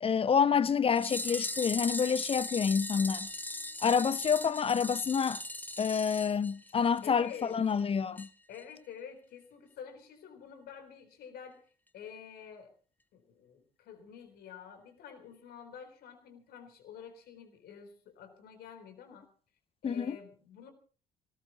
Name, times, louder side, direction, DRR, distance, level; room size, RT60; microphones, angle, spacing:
voice 1, 0.0-3.3 3.8-5.4 5.8-8.3 19.8-20.2, left 6 dB, 30° left, 0.7 m, -28 dB
sound 1, 0.9-7.1 7.3-7.4 7.7-7.8 8.2-8.3 8.6-8.7, left 1 dB, 10° left, 1.3 m, -39 dB
voice 2, 7.0-7.6 8.5-11.6 11.9-12.7 13.1-19.3 19.8-20.7, left 7 dB, 55° left, 3.8 m, -49 dB
22.5 x 18.5 x 3.0 m
figure-of-eight pair, 50°, 19 cm